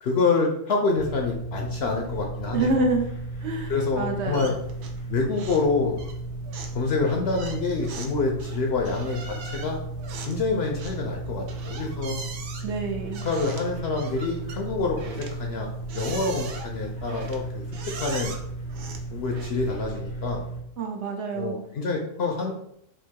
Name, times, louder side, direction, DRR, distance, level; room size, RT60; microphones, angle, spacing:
voice 1, 0.0-2.9 3.7-4.5 5.1-6.0 6.7-9.8 10.3-12.2 13.2-15.7 15.9-17.6 18.0-18.3 19.1-20.4 21.3-22.5, left 4 dB, 60° left, 1 dB, 0.7 m, -27 dB
sound 1, 0.9-20.6, right 2 dB, 90° left, 1.3 m, -35 dB
voice 2, 2.5-3.1 3.4-4.6 12.6-13.2 20.8-21.6, right 3 dB, 60° right, 3 dB, 0.9 m, -27 dB
sound 2, 4.3-5.1 5.3-5.7 6.0-19.8, right 4 dB, 85° right, 1.1 m, -41 dB
3.6 x 2.6 x 4.5 m, 0.74 s
omnidirectional pair, 1.4 m